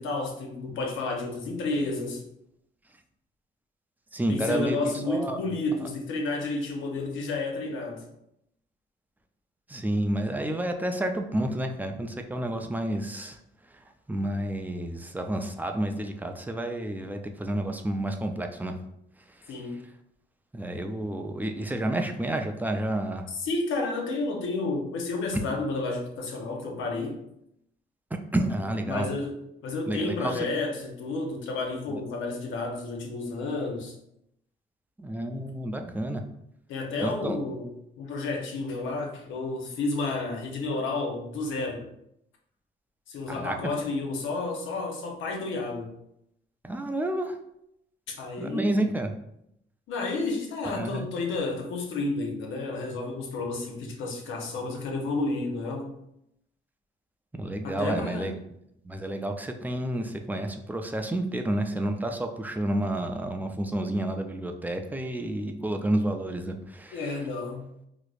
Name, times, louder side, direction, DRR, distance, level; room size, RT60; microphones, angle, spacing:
voice 1, 0.0-2.2 4.3-8.1 19.5-19.8 23.3-27.2 28.9-33.9 36.7-41.9 43.1-45.9 48.2-48.7 49.9-55.9 57.6-58.4 66.9-67.7, left 3 dB, 80° left, 1 dB, 0.7 m, -31 dB
voice 2, 4.1-5.4 9.7-13.4 13.7-18.8 19.4-19.5 20.5-23.3 28.1-29.1 29.9-30.4 31.9-32.0 35.0-36.2 37.0-37.4 43.3-43.6 46.6-47.4 48.4-49.2 50.7-51.1 57.3-58.4 58.8-67.1, right 1 dB, 10° right, 5 dB, 0.3 m, -30 dB
4.7 x 2.0 x 2.4 m, 0.79 s
cardioid pair, 90°, 20 cm